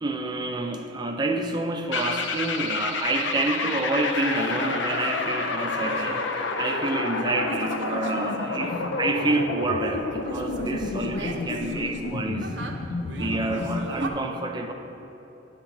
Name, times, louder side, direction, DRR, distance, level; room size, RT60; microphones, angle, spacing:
voice 1, 0.0-12.6 13.2-14.7, right 2 dB, 25° right, 3 dB, 0.5 m, -28 dB
sound 1, 1.9-14.0, left 3 dB, 70° left, 0.5 m, -29 dB
sound 2, 4.1-9.3 9.7-14.1, right 2 dB, 70° right, 0.7 m, -39 dB
9.6 x 3.7 x 7.1 m, 2.9 s
head